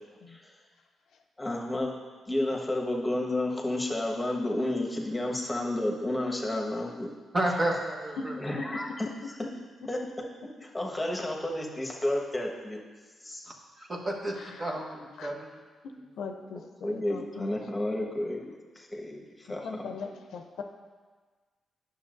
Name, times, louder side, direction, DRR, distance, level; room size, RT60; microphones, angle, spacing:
voice 1, 1.4-1.9 2.3-7.1 8.4-9.1 9.9-10.0 10.7-12.8 13.2-13.5 16.8-18.5 18.7-19.6, left 1 dB, 15° left, 0 dB, 1.3 m, -31 dB
voice 2, 7.3-8.4 13.8-15.5, right 1 dB, 35° right, 0 dB, 1.2 m, -31 dB
voice 3, 14.3-14.8 15.2-15.3 15.8-17.6 19.6-20.6, left 4 dB, 80° left, 5 dB, 0.5 m, -40 dB
9.8 x 6.6 x 2.6 m, 1.4 s
cardioid pair, 70°, 0 cm